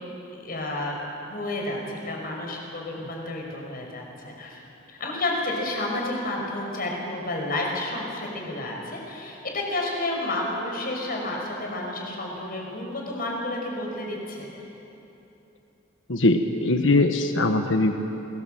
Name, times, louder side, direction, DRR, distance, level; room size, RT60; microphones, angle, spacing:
voice 1, 0.4-1.0 1.3-4.6 4.9-14.5, left 2 dB, 50° left, 0 dB, 5.4 m, -31 dB
voice 2, 16.1-17.9, left 2 dB, 80° left, 6 dB, 1.3 m, -21 dB
27.5 x 19.0 x 7.9 m, 3.0 s
head